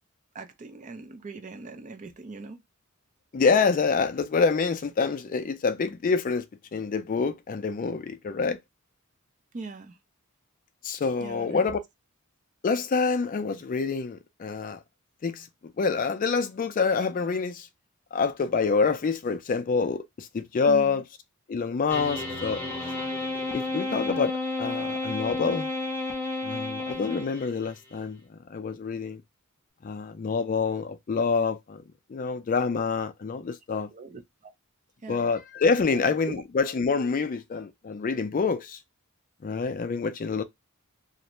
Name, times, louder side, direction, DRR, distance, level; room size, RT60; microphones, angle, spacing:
voice 1, 0.3-2.6 9.5-10.0 11.2-11.7 20.7-21.0 33.9-34.5 35.0-35.3 35.8-36.0 36.3-36.4, right 3 dB, 35° right, 0.4 m, -41 dB
voice 2, 3.3-8.6 10.8-11.8 12.6-14.8 15.2-17.7 18.1-21.0 21.5-22.6 23.5-25.7 26.4-29.2 29.8-31.8 32.1-33.9 35.1-38.8 39.4-40.4, left 5 dB, 40° left, 0.4 m, -27 dB
sound 1, 21.9-27.7, left 2 dB, 10° left, 0.8 m, -31 dB
2.4 x 2.1 x 2.9 m
head